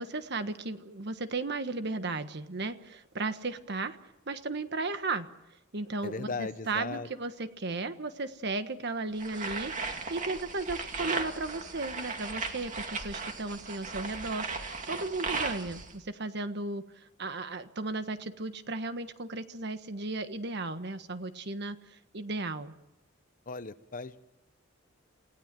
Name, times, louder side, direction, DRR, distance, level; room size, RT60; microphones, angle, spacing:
voice 1, 0.0-4.0 4.3-5.3 5.7-16.9 17.2-21.8 22.1-22.7, right 3 dB, 55° right, 10 dB, 1.4 m, -35 dB
voice 2, 6.0-7.1 23.5-24.3, left 3 dB, 45° left, 14 dB, 0.8 m, -37 dB
sound 1, 9.2-15.9, right 4 dB, 40° right, 2.4 m, -36 dB
28.5 x 17.5 x 7.6 m, 0.93 s
head